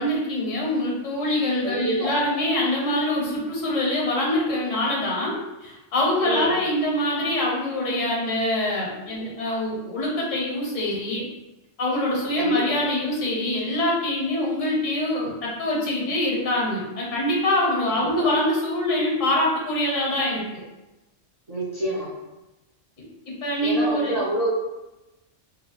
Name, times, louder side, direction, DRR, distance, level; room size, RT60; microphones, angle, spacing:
voice 1, 0.0-11.2 11.8-20.6 23.3-24.2, left 1 dB, 80° left, -3 dB, 1.3 m, -24 dB
voice 2, 1.6-2.1 6.2-6.6 12.4-12.8 17.9-18.0 21.5-22.1 23.6-24.5, right 1 dB, 40° right, -7 dB, 0.5 m, -28 dB
2.8 x 2.7 x 2.8 m, 1.0 s
omnidirectional pair, 1.3 m